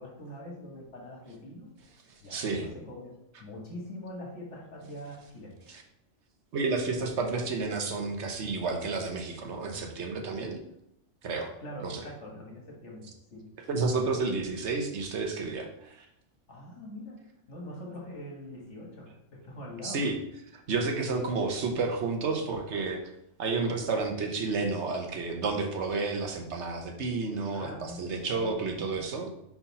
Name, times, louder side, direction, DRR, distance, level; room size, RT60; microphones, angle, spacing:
voice 1, 0.0-1.7 2.2-5.6 11.6-13.5 16.5-20.1 27.3-29.1, left 1 dB, 70° left, -2 dB, 1.9 m, -44 dB
voice 2, 2.3-2.6 5.7-5.8 6.5-10.6 11.2-11.5 11.8-12.0 13.7-16.1 19.8-20.1 20.5-23.0 23.4-29.3, right 3 dB, 65° right, 4 dB, 1.1 m, -31 dB
5.4 x 4.8 x 4.0 m, 0.80 s
omnidirectional pair, 1.3 m